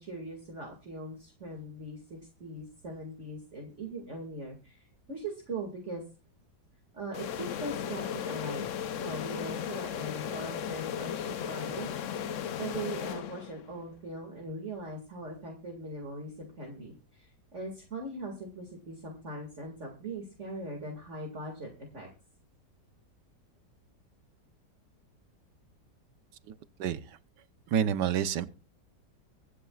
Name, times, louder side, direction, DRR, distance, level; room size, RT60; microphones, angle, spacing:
voice 1, 0.0-6.0 6.9-12.3 12.6-22.1, right 2 dB, 45° right, 1 dB, 2.5 m, -41 dB
sound 1, 7.1-13.8, left 9 dB, 60° left, 0.9 m, -36 dB
voice 2, 26.8-27.2 27.7-28.5, right 8 dB, 85° right, 13 dB, 1.5 m, -28 dB
24.5 x 9.9 x 2.4 m, 0.33 s
omnidirectional pair, 1.8 m